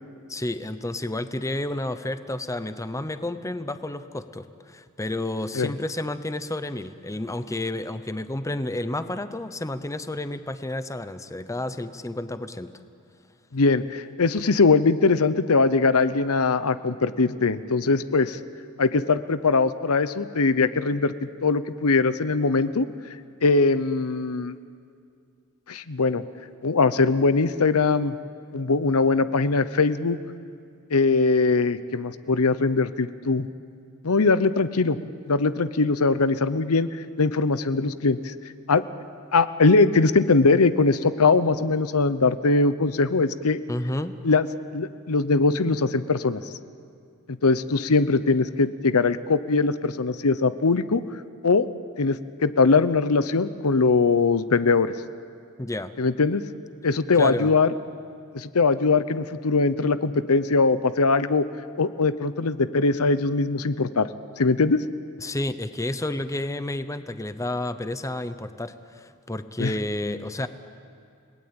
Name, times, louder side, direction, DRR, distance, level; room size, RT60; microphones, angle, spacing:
voice 1, 0.3-12.7 43.7-44.2 55.6-55.9 57.2-57.5 65.2-70.5, left 1 dB, 15° left, 11 dB, 0.8 m, -31 dB
voice 2, 13.5-18.4 18.8-22.9 23.4-24.5 25.7-26.2 26.6-28.2 28.5-30.2 30.9-33.5 34.0-35.0 35.3-36.9 37.2-38.3 38.7-38.8 39.3-43.6 44.2-44.5 44.7-46.4 47.4-51.0 51.4-51.7 52.0-54.9 56.0-56.4 56.8-57.7 58.3-61.4 61.8-64.1 64.4-64.8 69.6-69.7, left 3 dB, 85° left, 13 dB, 0.8 m, -21 dB
30.0 x 19.5 x 8.9 m, 2.3 s
head